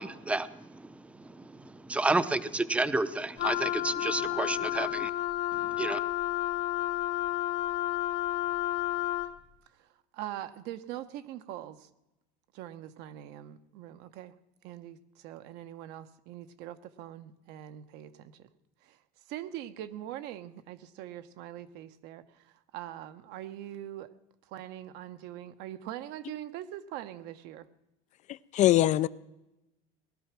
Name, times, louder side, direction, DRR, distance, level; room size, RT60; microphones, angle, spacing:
voice 1, 0.0-5.1 5.5-6.0, right 2 dB, 5° right, 0.7 m, -31 dB
Wind instrument woodwind instrument, 3.4-9.4, left 14 dB, 55° left, 1.3 m, -31 dB
voice 2, 9.7-11.9 12.5-14.4 14.6-18.5 18.8-24.1 24.4-27.7, right 12 dB, 65° right, 1.1 m, -43 dB
voice 3, 28.3-29.1, left 14 dB, 40° left, 0.5 m, -23 dB
18.5 x 12.0 x 6.1 m
supercardioid pair, 125°, 19 cm